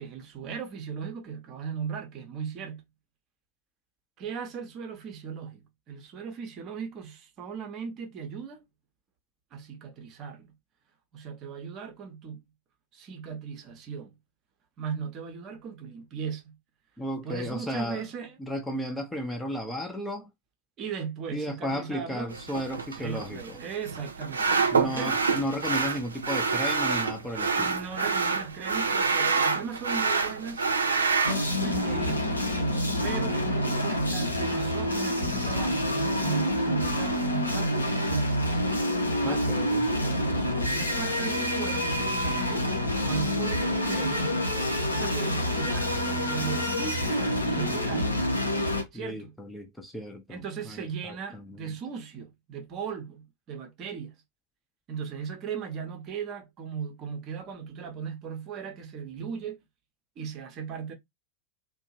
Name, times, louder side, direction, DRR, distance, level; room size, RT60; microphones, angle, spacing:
voice 1, 0.0-2.8 4.2-8.6 9.5-10.5 11.1-12.4 12.9-14.1 14.8-16.6 17.2-18.4 20.8-22.3 23.0-25.2 27.6-30.7 31.2-32.3 33.0-38.4 39.2-39.5 40.3-42.5 43.0-44.3 44.9-48.2 48.9-49.3 50.3-54.1 54.9-59.6 60.2-60.9, right 6 dB, 35° right, 0.7 m, -37 dB
voice 2, 17.0-18.0 18.4-20.3 21.3-23.6 24.7-27.8 39.2-39.9 48.9-51.7, equal, 5° left, 0.5 m, -34 dB
sound 1, 22.3-31.3, right 4 dB, 75° right, 0.5 m, -27 dB
sound 2, 31.2-48.8, left 1 dB, 80° left, 0.7 m, -27 dB
2.6 x 2.2 x 2.7 m
figure-of-eight pair, 90°, 0 cm